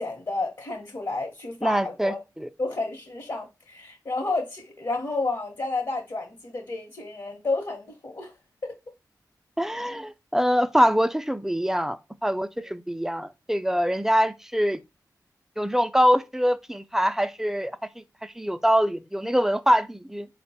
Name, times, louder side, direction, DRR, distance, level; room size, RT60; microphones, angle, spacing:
voice 1, 0.0-2.2 2.6-8.3 8.6-8.8, left 3 dB, 50° left, 1.0 m, -31 dB
voice 2, 1.6-2.5 9.6-12.0 12.2-14.8 15.6-20.3, equal, 5° right, 0.4 m, -24 dB
4.2 x 2.2 x 4.1 m
cardioid pair, 55°, 7 cm